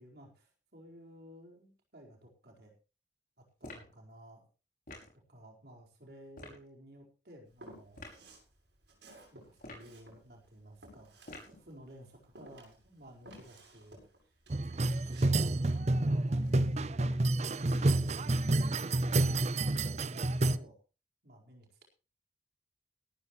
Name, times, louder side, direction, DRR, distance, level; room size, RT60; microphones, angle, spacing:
voice 1, 0.0-2.7 3.4-4.5 5.3-8.1 9.3-11.2 11.5-14.0 14.2-14.3 15.0-15.6 16.0-16.4 17.4-18.0 18.8-20.2 20.4-20.8 21.2-21.8, equal, 60° right, 0 dB, 4.5 m, -55 dB
sound 1, 3.6-4.0 4.9-5.2 6.3-6.6 7.9-8.2 9.6-10.0 11.3-11.6, left 2 dB, 50° left, 5.8 m, -48 dB
Walk footsteps, 7.6-8.5 8.8-11.9 12.4-16.6 17.0-18.2, right 1 dB, 75° right, 7.6 m, -55 dB
sound 2, 14.5-20.6, right 2 dB, 40° right, 0.6 m, -29 dB
17.5 x 13.5 x 3.1 m, 0.33 s
head